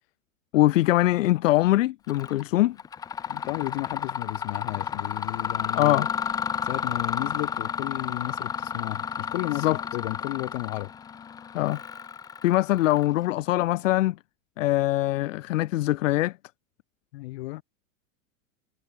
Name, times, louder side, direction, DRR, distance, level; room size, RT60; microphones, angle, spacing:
voice 1, 0.5-2.8 5.7-6.1 9.5-9.8 11.5-11.8 12.4-14.2 14.6-16.4, left 16 dB, 70° left, 1.3 m, -22 dB
Mechanisms, 2.1-2.4 2.8-13.3, left 7 dB, 10° left, 0.8 m, -32 dB
voice 2, 3.3-6.0 6.6-10.9 17.1-17.6, left 20 dB, 50° left, 4.0 m, -33 dB
supercardioid pair, 170°, 40 cm